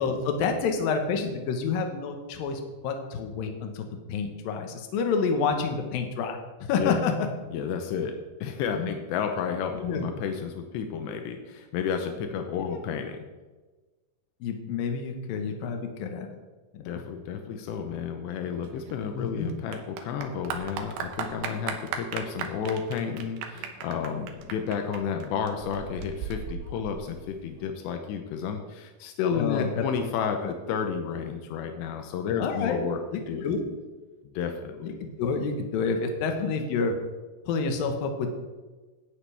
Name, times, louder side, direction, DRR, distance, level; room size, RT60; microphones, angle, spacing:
voice 1, 0.0-7.3 8.8-8.9 9.8-10.0 12.7-12.8 14.4-16.3 16.8-17.0 19.1-19.5 29.3-29.9 30.4-30.5 32.4-32.8 33.1-33.6 34.8-34.9 35.2-36.9 37.5-38.4, left 5 dB, 65° left, 4 dB, 2.8 m, -28 dB
voice 2, 7.5-13.3 16.8-33.4 34.2-34.9, left 7 dB, 90° left, 5 dB, 3.2 m, -31 dB
Clapping / Applause, 18.6-27.6, right 7 dB, 80° right, 3.1 m, -37 dB
17.5 x 10.5 x 3.5 m, 1.2 s
omnidirectional pair, 4.9 m